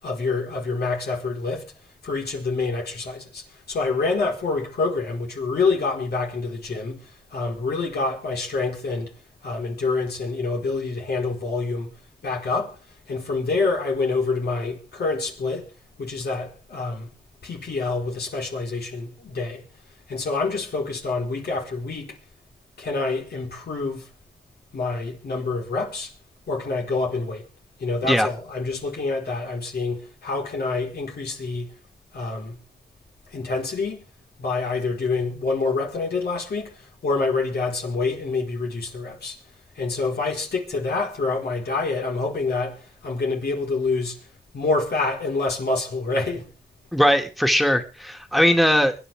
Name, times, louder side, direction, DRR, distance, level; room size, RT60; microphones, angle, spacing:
voice 1, 0.0-1.6 2.0-7.0 7.3-9.1 9.4-11.9 12.2-12.7 13.1-15.7 16.0-17.1 17.4-19.6 20.1-22.2 22.8-24.1 24.7-26.1 26.5-27.4 27.8-31.7 32.1-32.6 33.3-34.0 34.4-36.7 37.0-39.4 39.8-44.2 44.5-46.5, left 3 dB, 75° left, 4.6 m, -27 dB
voice 2, 46.9-49.1, equal, ahead, 2.1 m, -20 dB
24.5 x 10.0 x 3.6 m
cardioid pair, 55°, 17 cm